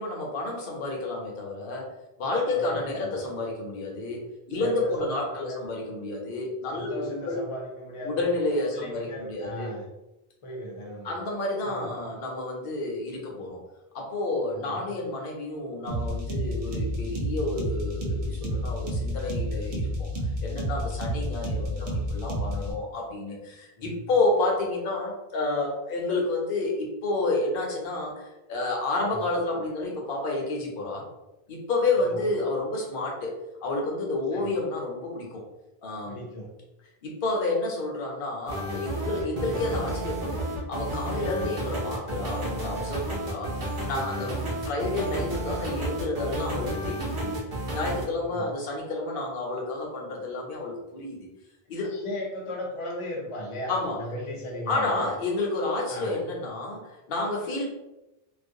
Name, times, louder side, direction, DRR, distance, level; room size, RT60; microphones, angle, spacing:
voice 1, 0.0-1.9 2.2-4.2 4.5-7.4 8.0-9.7 11.0-13.6 13.9-20.1 20.4-31.0 31.5-33.3 33.6-35.4 35.8-36.2 37.0-40.4 40.7-44.3 44.6-47.4 47.7-51.3 51.7-51.9 53.7-54.0 54.7-57.7, left 2 dB, 65° left, -1 dB, 0.8 m, -30 dB
voice 2, 2.5-3.1 4.5-5.7 6.7-8.2 8.7-9.9 10.4-11.1 11.6-12.0 14.5-14.8 21.1-21.4 23.8-24.1 29.1-29.2 32.0-32.2 34.3-34.5 36.0-36.5 39.3-39.6 44.2-44.5 48.2-48.5 51.6-55.1 55.9-56.2, equal, 40° left, -2 dB, 0.5 m, -37 dB
sound 1, 15.9-22.7, equal, 85° right, 0.9 m, -30 dB
sound 2, 38.5-48.1, right 1 dB, 60° right, 0.8 m, -32 dB
2.3 x 2.1 x 2.6 m, 0.97 s
omnidirectional pair, 1.0 m